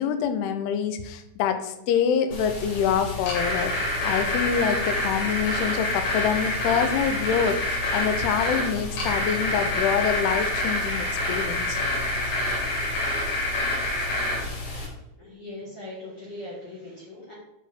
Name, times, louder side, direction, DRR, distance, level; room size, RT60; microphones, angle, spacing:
voice 1, 0.0-11.8, left 8 dB, 80° left, 8 dB, 2.5 m, -26 dB
sound 1, 2.3-14.9, left 1 dB, 60° left, 3.8 m, -27 dB
voice 2, 15.2-17.3, left 2 dB, 45° left, -8 dB, 2.1 m, -40 dB
6.2 x 5.9 x 4.4 m, 0.86 s
omnidirectional pair, 5.0 m